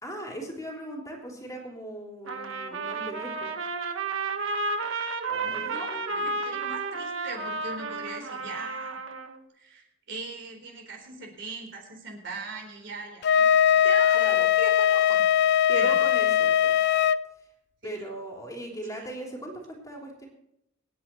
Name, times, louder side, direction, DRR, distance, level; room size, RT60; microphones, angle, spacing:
voice 1, 0.0-3.5 5.3-6.4 14.1-14.5 15.7-16.7 17.8-20.3, right 1 dB, 15° left, -1 dB, 3.4 m, -39 dB
Trumpet, 2.3-9.4, right 3 dB, 75° right, 1.5 m, -32 dB
voice 2, 5.4-9.0 9.6-15.2 15.7-16.0 17.8-18.0, right 3 dB, 60° right, 3 dB, 4.0 m, -40 dB
Wind instrument woodwind instrument, 13.2-17.2, left 9 dB, 55° left, 0.4 m, -21 dB
27.0 x 9.4 x 3.1 m, 0.81 s
head